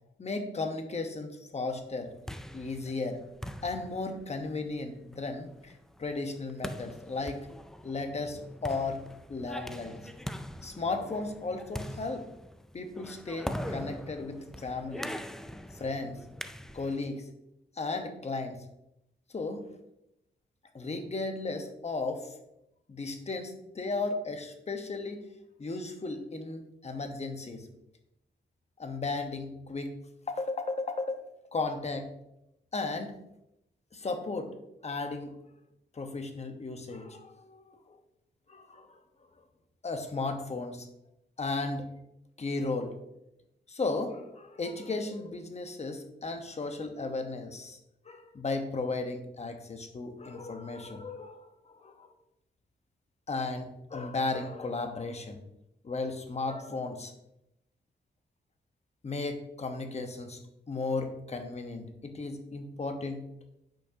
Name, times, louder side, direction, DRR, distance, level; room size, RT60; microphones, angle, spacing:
voice 1, 0.2-2.1 2.5-3.2 3.6-5.7 6.0-7.5 7.8-9.0 9.3-10.0 10.6-12.3 12.7-15.1 15.7-16.2 16.7-17.2 17.8-18.6 19.3-19.7 20.7-22.3 22.9-25.2 25.6-27.7 28.8-29.9 30.3-31.2 31.5-32.1 32.7-33.2 33.9-34.5 34.8-35.4 35.9-38.0 38.5-39.0 39.8-40.9 41.4-41.9 42.4-42.9 43.7-47.8 48.1-52.1 53.3-55.4 55.8-57.1 59.0-60.4 60.7-63.2, left 3 dB, 35° left, 6 dB, 1.0 m, -35 dB
sound 1, 1.9-17.1, equal, ahead, 0.3 m, -42 dB
8.8 x 5.4 x 2.8 m, 0.83 s
wide cardioid pair, 100°, 19 cm